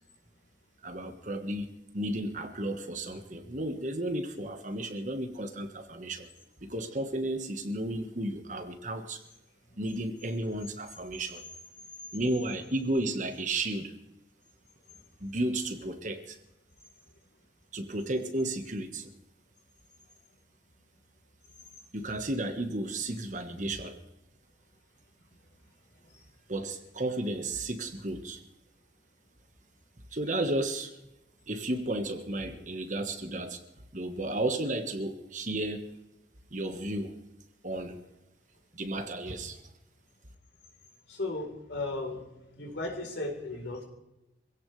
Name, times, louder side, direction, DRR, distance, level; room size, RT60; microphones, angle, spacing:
voice 1, 0.8-6.3 6.6-9.2 9.8-11.4 12.1-13.9 15.2-16.4 17.7-19.1 21.9-24.0 26.5-28.4 30.1-30.9 31.5-33.6 33.9-35.9 36.5-37.1 37.6-38.0 38.7-39.6, right 1 dB, 45° right, 6 dB, 1.5 m, -33 dB
voice 2, 41.1-42.2 42.5-43.8, left 2 dB, 85° left, 1 dB, 4.1 m, -35 dB
25.5 x 16.0 x 3.4 m, 0.93 s
head